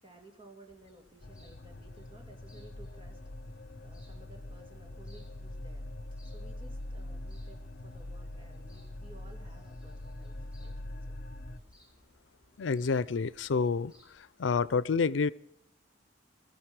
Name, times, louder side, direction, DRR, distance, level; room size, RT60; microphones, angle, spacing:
voice 1, 0.0-3.2 3.8-5.8 6.2-11.2, right 2 dB, 30° right, 3 dB, 2.9 m, -56 dB
sound 1, 0.7-14.3, left 1 dB, 5° right, 6.0 m, -65 dB
sound 2, 1.2-11.6, left 1 dB, 55° left, 0.9 m, -43 dB
voice 2, 12.6-13.9 14.4-15.3, left 5 dB, 90° left, 20 dB, 0.5 m, -28 dB
21.0 x 13.5 x 4.9 m, 0.79 s
head